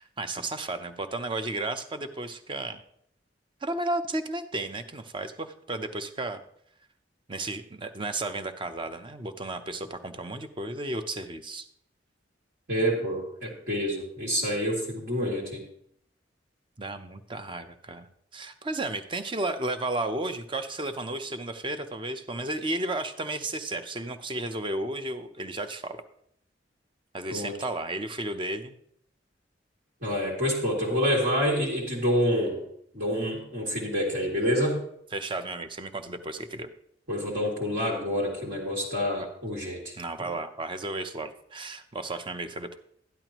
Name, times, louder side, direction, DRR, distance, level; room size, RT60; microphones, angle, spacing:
voice 1, 0.0-2.8 3.6-6.4 7.3-11.7 16.8-18.1 18.3-26.0 27.1-28.8 35.1-36.7 40.0-42.8, right 2 dB, 30° right, 9 dB, 0.7 m, -33 dB
voice 2, 12.7-15.6 27.3-27.5 30.0-32.6 32.9-34.8 37.1-39.9, equal, 65° right, -5 dB, 2.5 m, -27 dB
13.0 x 10.5 x 3.0 m, 0.69 s
head